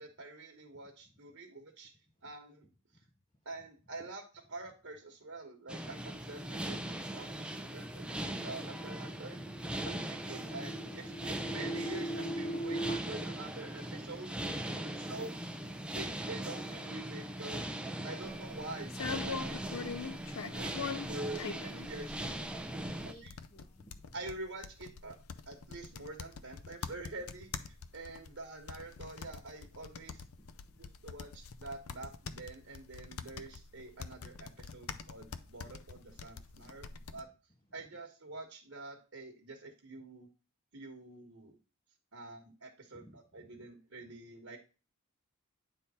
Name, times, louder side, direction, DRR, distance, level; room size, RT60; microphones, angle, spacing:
voice 1, 0.0-1.9 2.2-2.7 3.4-4.2 4.5-6.8 7.1-9.4 9.8-14.3 15.0-15.3 15.9-17.7 18.0-18.9 19.3-20.0 20.5-22.5 23.0-23.3 24.1-25.2 25.5-30.2 30.8-37.3 37.7-40.3 40.7-41.6 42.1-44.6, right 2 dB, 60° right, 2 dB, 1.2 m, -46 dB
sound 1, 5.7-23.1, right 1 dB, 5° right, 0.5 m, -40 dB
sound 2, 8.6-13.0, right 1 dB, 45° left, 1.1 m, -40 dB
voice 2, 14.6-15.0 22.9-23.3 23.5-24.1 30.4-30.9 42.9-43.6 44.0-44.1, left 1 dB, 20° left, 3 dB, 0.8 m, -58 dB
sound 3, 18.2-37.2, left 5 dB, 75° left, 0.6 m, -44 dB
9.5 x 3.6 x 4.2 m, 0.33 s
head